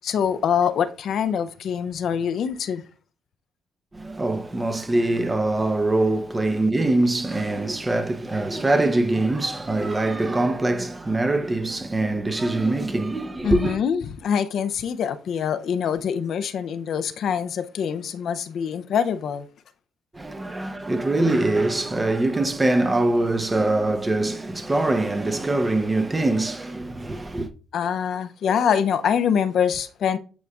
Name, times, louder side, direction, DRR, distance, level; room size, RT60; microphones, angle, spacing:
voice 1, 0.0-2.8 13.4-19.4 27.7-30.2, left 8 dB, 65° left, 0.5 m, -24 dB
voice 2, 3.9-13.8 20.1-27.5, right 2 dB, 20° right, 0.7 m, -23 dB
9.3 x 4.8 x 2.3 m
cardioid pair, 90°, 0 cm